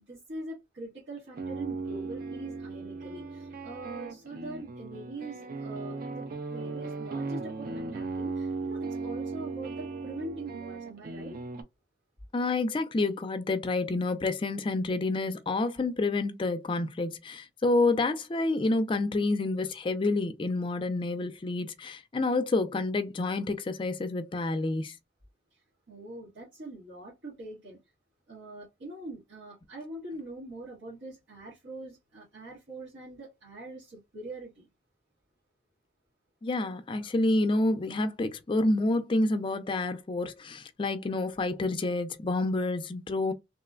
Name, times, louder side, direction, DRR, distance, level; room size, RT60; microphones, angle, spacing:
voice 1, 0.0-11.4 25.5-27.8 28.3-34.7, right 2 dB, 90° right, 1.3 m, -43 dB
sound 1, 1.2-11.6, right 3 dB, 50° right, 0.4 m, -37 dB
voice 2, 12.3-24.9 36.4-43.3, left 2 dB, 25° left, 0.3 m, -28 dB
3.0 x 2.1 x 2.3 m
head